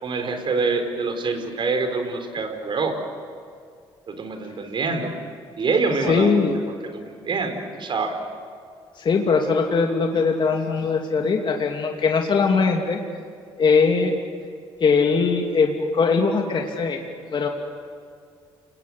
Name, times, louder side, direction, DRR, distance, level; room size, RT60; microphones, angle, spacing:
voice 1, 0.0-3.0 4.1-5.1 5.6-6.4 6.9-8.2, right 4 dB, 50° right, 6 dB, 4.7 m, -25 dB
voice 2, 5.9-6.6 9.0-13.0 13.6-14.1 14.8-17.0 17.3-17.5, left 5 dB, 50° left, 2 dB, 2.7 m, -21 dB
30.0 x 20.5 x 8.1 m, 2.2 s
supercardioid pair, 70°, 10 cm